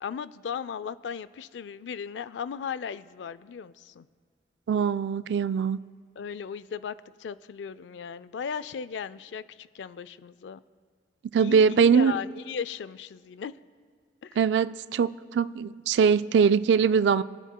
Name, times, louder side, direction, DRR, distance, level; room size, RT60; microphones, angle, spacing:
voice 1, 0.0-4.1 6.2-10.6 11.4-13.5 14.2-14.4, left 7 dB, 90° left, 16 dB, 0.4 m, -36 dB
voice 2, 4.7-5.8 11.3-12.1 14.4-17.2, right 6 dB, 70° right, 15 dB, 0.3 m, -22 dB
27.0 x 9.1 x 2.2 m, 2.2 s
head